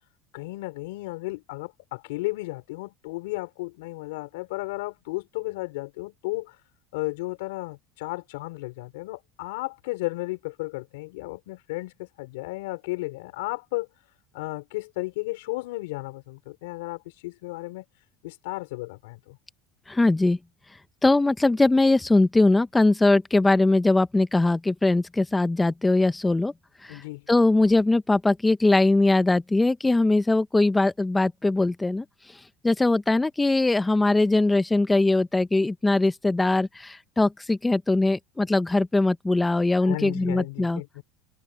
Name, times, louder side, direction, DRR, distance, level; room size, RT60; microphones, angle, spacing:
voice 1, 0.3-6.6 6.9-13.9 14.3-17.8 18.2-19.4 26.9-27.3 39.8-41.0, left 22 dB, 85° left, 5.3 m, -34 dB
voice 2, 19.9-20.4 21.0-26.5 26.8-40.8, left 2 dB, 10° left, 0.8 m, -21 dB
supercardioid pair, 115°, 0 cm